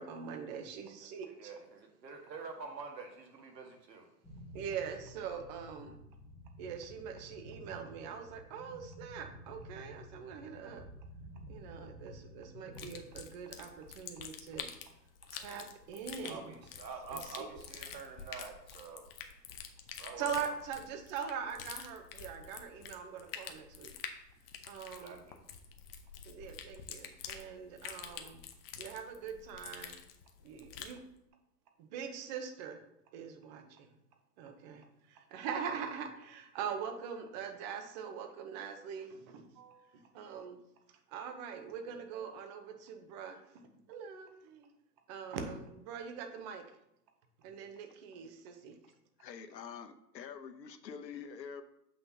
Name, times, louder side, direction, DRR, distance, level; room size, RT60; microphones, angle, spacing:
voice 1, 0.0-1.5 4.5-6.0 6.6-10.8 11.5-14.7 15.3-16.5 17.1-17.5 20.2-23.9 24.7-25.2 26.2-28.4 28.8-30.0 30.4-31.0 31.8-32.8 33.1-33.9 34.4-40.6 40.9-43.6 43.9-44.7 45.1-46.8 47.4-48.8, right 7 dB, 25° right, 6 dB, 0.8 m, -43 dB
voice 2, 1.4-4.0 16.2-19.0 20.0-20.5 25.0-25.3, right 4 dB, 80° right, 3 dB, 1.8 m, -46 dB
sound 1, 4.2-12.9, equal, 5° left, 1.1 m, -52 dB
sound 2, 12.7-31.0, left 8 dB, 35° left, 0.7 m, -47 dB
voice 3, 49.2-51.6, left 7 dB, 85° left, 9 dB, 0.9 m, -46 dB
7.7 x 5.8 x 2.8 m, 0.80 s
hypercardioid pair, 140°, 49 cm